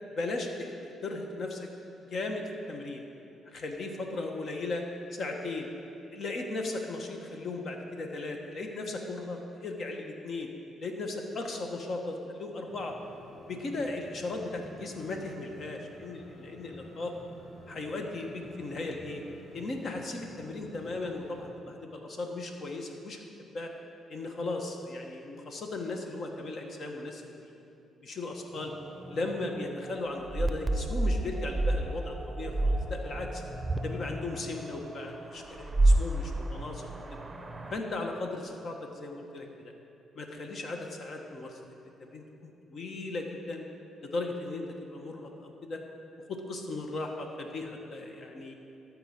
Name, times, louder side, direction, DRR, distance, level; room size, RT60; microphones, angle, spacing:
voice 1, 0.2-1.7 2.1-3.0 3.4-4.8 5.1-5.7 6.1-10.5 10.8-12.9 13.5-17.1 17.7-19.2 19.5-23.2 23.5-23.7 24.1-27.2 28.0-28.7 29.1-33.4 33.8-37.2 37.7-39.7 40.1-41.6 42.0-43.6 44.0-45.8 46.2-48.5, left 2 dB, 55° left, 3 dB, 1.4 m, -37 dB
sound 1, 12.7-21.5, equal, 20° left, 2.3 m, -50 dB
sound 2, 28.6-37.8, right 1 dB, 20° right, 0.7 m, -30 dB
12.5 x 4.9 x 8.2 m, 2.7 s
cardioid pair, 90°, 0 cm